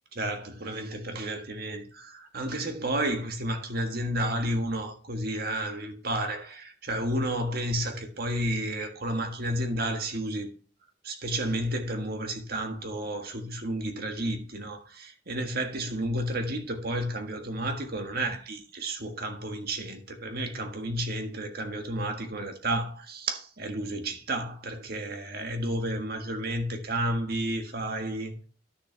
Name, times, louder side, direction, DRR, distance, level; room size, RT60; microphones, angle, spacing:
voice 1, 0.1-10.5 11.0-28.4, right 1 dB, 55° right, 1.6 m, -31 dB
11.5 x 6.7 x 3.4 m
head